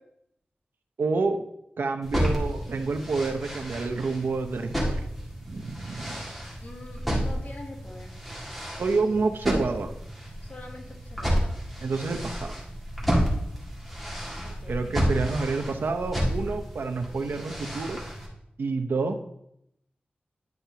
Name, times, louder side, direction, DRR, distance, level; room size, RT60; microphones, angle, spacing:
voice 1, 1.0-1.4 1.8-5.0 5.4-6.2 8.8-9.9 11.8-12.6 14.7-18.0 18.6-19.4, right 3 dB, 80° right, 6 dB, 0.7 m, -28 dB
sound 1, 2.0-18.3, equal, ahead, 2.1 m, -31 dB
voice 2, 6.6-8.2 10.4-11.6 14.4-14.9, left 2 dB, 55° left, 0 dB, 1.6 m, -44 dB
10.5 x 5.8 x 2.8 m, 0.78 s
wide cardioid pair, 105°, 3 cm